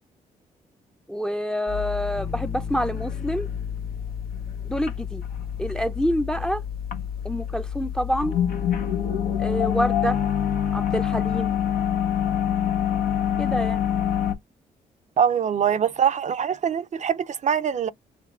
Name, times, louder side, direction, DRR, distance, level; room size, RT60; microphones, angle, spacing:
voice 1, 1.1-3.5 4.6-5.2 5.6-6.6 7.2-8.3 9.4-10.2 10.7-11.5 13.4-13.8, equal, 5° left, 0.6 m, -27 dB
sound 1, 1.7-14.3, left 9 dB, 75° left, 1.1 m, -27 dB
sound 2, 2.1-9.4, left 1 dB, 45° left, 1.7 m, -45 dB
voice 2, 15.2-17.9, right 8 dB, 50° right, 0.5 m, -23 dB
6.7 x 2.6 x 2.4 m
cardioid pair, 70°, 15 cm